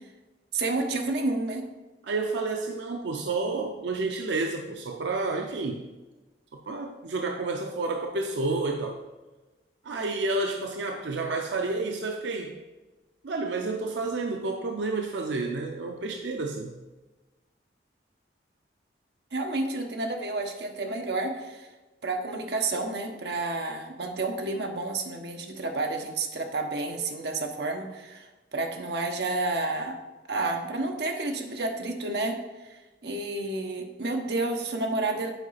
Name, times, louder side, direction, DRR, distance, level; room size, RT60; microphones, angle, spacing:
voice 1, 0.5-1.6 19.3-21.7 22.0-30.0 30.3-32.4 32.6-35.3, right 2 dB, 65° right, 3 dB, 0.9 m, -30 dB
voice 2, 2.0-5.8 6.5-9.0 9.8-12.5 13.2-16.7, right 3 dB, 90° right, 3 dB, 0.6 m, -30 dB
8.1 x 4.8 x 4.1 m, 1.2 s
head